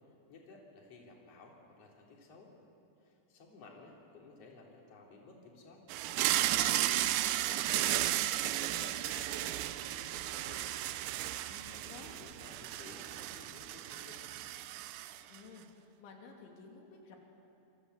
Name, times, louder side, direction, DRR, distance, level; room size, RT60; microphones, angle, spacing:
voice 1, 0.3-2.5 3.0-10.7 11.7-14.2, left 3 dB, 35° left, -1 dB, 4.1 m, -55 dB
sound 1, 5.9-15.4, right 14 dB, 85° right, 2.1 m, -34 dB
voice 2, 11.5-12.1 15.3-17.2, left 5 dB, 90° left, 1 dB, 5.2 m, -53 dB
27.0 x 24.5 x 8.1 m, 2.6 s
omnidirectional pair, 5.2 m